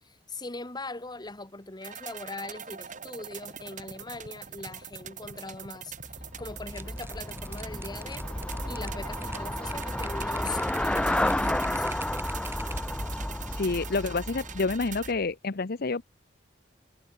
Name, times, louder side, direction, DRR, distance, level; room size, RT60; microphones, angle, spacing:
voice 1, 0.0-5.9 6.4-8.2 8.7-11.9, left 2 dB, 25° left, 2.4 m, -41 dB
sound 1, 1.8-15.1, right 8 dB, 45° right, 4.4 m, -43 dB
Traffic noise roadway noise / Bicycle, 6.0-15.2, left 1 dB, 5° left, 0.4 m, -31 dB
sound 2, 6.7-13.0, right 3 dB, 15° right, 2.4 m, -45 dB
voice 2, 13.5-16.0, left 3 dB, 55° left, 0.8 m, -28 dB
head